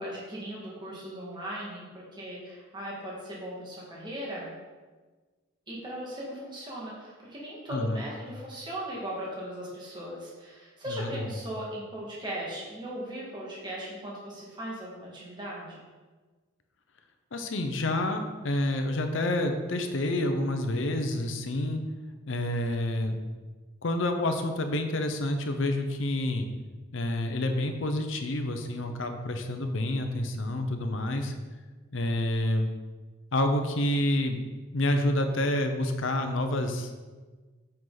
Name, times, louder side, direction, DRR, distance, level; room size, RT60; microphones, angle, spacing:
voice 1, 0.0-4.5 5.7-15.8, equal, 20° right, -6 dB, 1.9 m, -38 dB
voice 2, 7.7-8.0 11.0-11.2 17.3-21.8 22.3-23.1 23.8-26.5 26.9-31.3 31.9-32.7 33.3-34.4 34.7-37.1, left 1 dB, 70° left, 6 dB, 0.8 m, -28 dB
7.8 x 5.8 x 4.0 m, 1.4 s
head